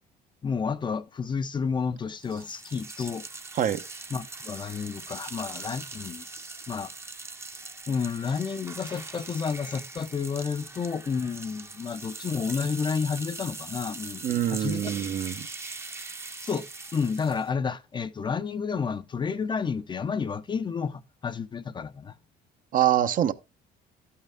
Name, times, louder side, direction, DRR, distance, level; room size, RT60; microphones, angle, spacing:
voice 1, 0.4-3.2 4.1-6.3 6.7-6.9 7.9-14.9 16.4-16.7 16.9-22.1, left 6 dB, 25° left, 0.5 m, -30 dB
sound 1, 2.2-17.5, right 3 dB, 15° right, 0.6 m, -41 dB
voice 2, 14.2-15.5 22.7-23.3, right 11 dB, 55° right, 0.7 m, -25 dB
12.0 x 5.7 x 3.4 m
cardioid pair, 110°, 17 cm